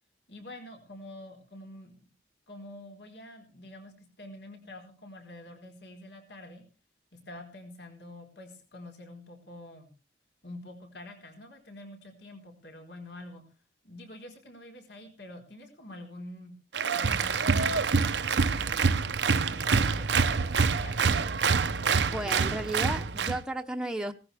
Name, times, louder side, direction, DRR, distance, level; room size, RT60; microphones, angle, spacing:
voice 1, 0.3-2.1 2.5-6.6 7.3-9.9 10.4-13.4 13.8-16.5 16.9-21.0, left 1 dB, 80° left, 2 dB, 4.3 m, -47 dB
Applause, 16.7-23.4, right 5 dB, 85° right, 0.8 m, -26 dB
voice 2, 22.0-24.1, right 1 dB, 5° right, 5 dB, 0.9 m, -33 dB
18.0 x 14.5 x 3.5 m, 0.33 s
head